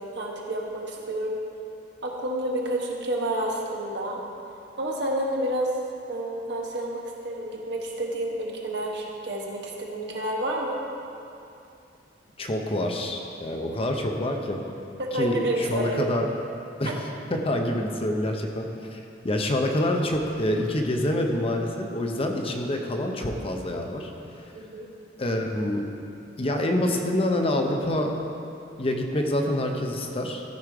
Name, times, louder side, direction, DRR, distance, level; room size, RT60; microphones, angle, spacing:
voice 1, 0.0-1.4 2.0-4.2 4.8-5.7 6.1-10.8 15.0-16.1 16.8-17.0 24.5-24.9, right 1 dB, 65° right, -1 dB, 1.3 m, -29 dB
voice 2, 12.4-14.6 15.1-16.3 16.8-17.0 17.3-18.7 18.9-24.1 25.2-25.9 26.4-28.1 28.8-30.4, left 1 dB, 30° left, 3 dB, 0.7 m, -26 dB
13.5 x 5.1 x 4.8 m, 2.7 s
head